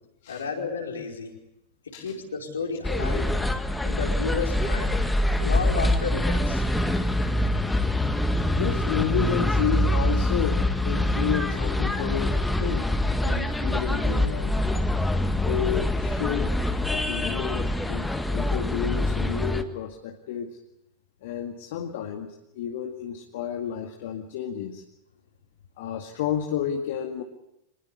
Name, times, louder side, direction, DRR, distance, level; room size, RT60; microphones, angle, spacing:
voice 1, 0.3-1.3 2.0-3.3 3.8-5.0 5.4-6.6, left 5 dB, 70° left, 1 dB, 4.8 m, -32 dB
sound 1, 2.8-19.6, left 1 dB, 5° left, 1.7 m, -25 dB
voice 2, 8.6-14.6 15.3-16.6 16.9-20.6 21.2-24.8 25.8-27.2, left 9 dB, 55° left, 4 dB, 2.0 m, -31 dB
25.5 x 20.5 x 8.4 m, 0.86 s
figure-of-eight pair, 90°, 0 cm